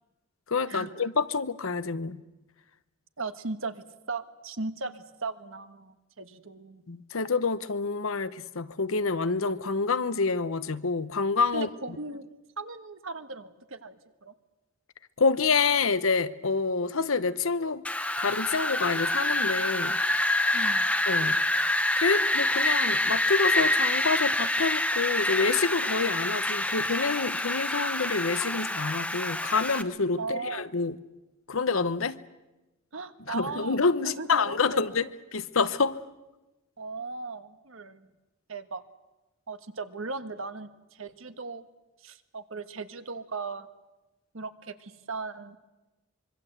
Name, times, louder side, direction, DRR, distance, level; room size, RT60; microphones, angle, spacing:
voice 1, 0.5-2.2 6.9-11.7 15.2-17.8 18.2-20.0 21.1-21.4 22.0-31.0 31.5-32.2 33.3-36.0, left 4 dB, 75° left, 0.9 m, -27 dB
voice 2, 3.2-6.8 11.5-12.3 12.6-14.3 20.5-20.9 30.2-30.6 32.9-34.8 36.8-38.1 38.5-38.8 39.5-41.6 42.0-43.7 44.3-45.6, right 3 dB, 70° right, 1.4 m, -37 dB
Wind, 17.8-29.8, left 1 dB, 5° left, 0.9 m, -27 dB
25.0 x 23.0 x 8.1 m
head